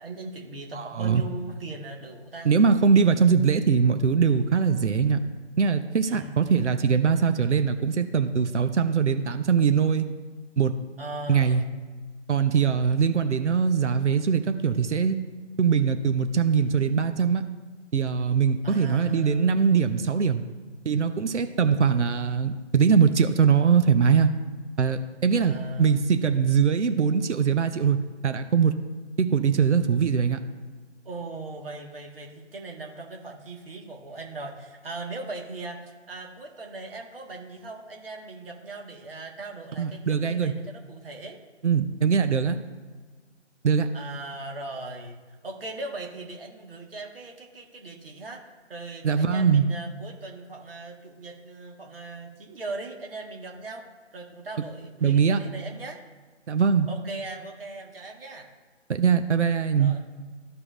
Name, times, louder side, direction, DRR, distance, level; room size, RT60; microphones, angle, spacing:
voice 1, 0.0-2.5 6.1-6.4 11.0-11.7 18.6-19.6 25.4-26.0 31.0-41.4 43.9-48.4 48.7-53.9 54.1-56.0 56.9-58.5 59.8-60.0, right 2 dB, 50° right, 1 dB, 1.7 m, -39 dB
voice 2, 0.7-1.2 2.4-5.2 5.6-10.1 10.6-10.7 11.3-11.6 12.3-15.2 15.6-17.4 17.9-20.4 20.8-24.3 24.8-28.7 29.2-30.4 39.8-40.5 41.6-42.6 43.6-43.9 49.0-49.6 55.0-55.4 56.5-56.9 58.9-59.9, right 6 dB, 70° right, 8 dB, 0.8 m, -22 dB
14.0 x 4.8 x 2.5 m, 1.4 s
figure-of-eight pair, 150°, 36 cm